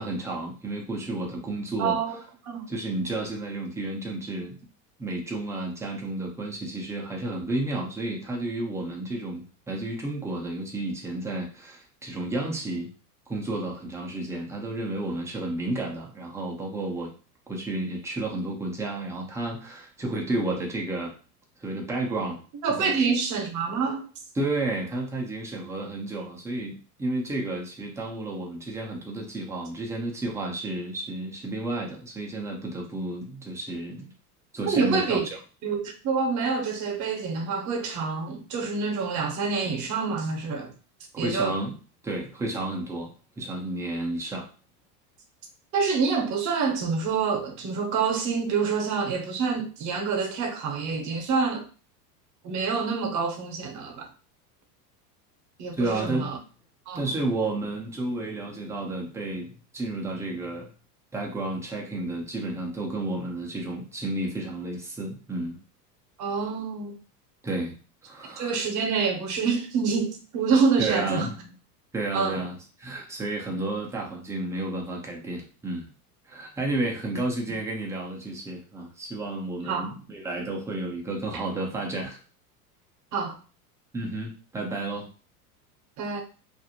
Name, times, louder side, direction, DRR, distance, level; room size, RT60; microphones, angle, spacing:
voice 1, 0.0-2.0 2.7-4.6 5.0-12.9 13.3-17.1 17.5-21.2 21.6-22.4 22.7-23.1 24.3-34.1 34.5-35.2 41.1-41.8 42.0-44.5 55.7-56.3 56.9-60.7 61.1-65.6 67.4-67.8 68.0-68.6 70.8-71.5 71.9-75.9 76.3-82.2 83.9-85.1, right 2 dB, 5° right, 0.3 m, -31 dB
voice 2, 1.8-2.2 2.4-2.7 22.6-24.1 34.7-35.3 35.6-40.7 41.2-41.5 45.7-51.6 52.4-54.1 55.6-56.4 56.9-57.1 66.2-67.0 68.4-71.3 72.1-72.4 77.1-77.2 79.7-79.9 83.1-83.4 86.0-86.2, right 5 dB, 40° right, 0.7 m, -27 dB
2.5 x 2.0 x 2.8 m
hypercardioid pair, 105°, 47 cm